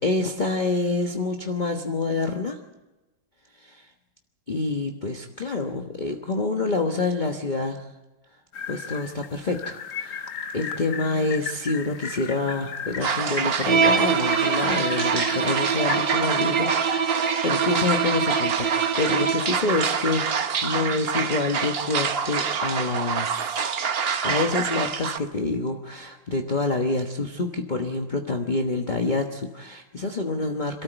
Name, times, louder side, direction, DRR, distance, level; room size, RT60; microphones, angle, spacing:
voice 1, 0.0-2.6 3.6-3.9 4.5-7.9 8.7-10.3 10.5-23.6 24.2-30.8, left 3 dB, 30° left, 3 dB, 1.2 m, -27 dB
sound 1, 8.5-16.0, left 7 dB, 55° left, 1.1 m, -35 dB
sound 2, 13.0-25.2, right 6 dB, 45° right, 0.8 m, -27 dB
Bowed string instrument, 13.7-19.6, right 6 dB, 75° right, 3.0 m, -24 dB
26.5 x 14.0 x 8.0 m, 1.1 s
omnidirectional pair, 2.0 m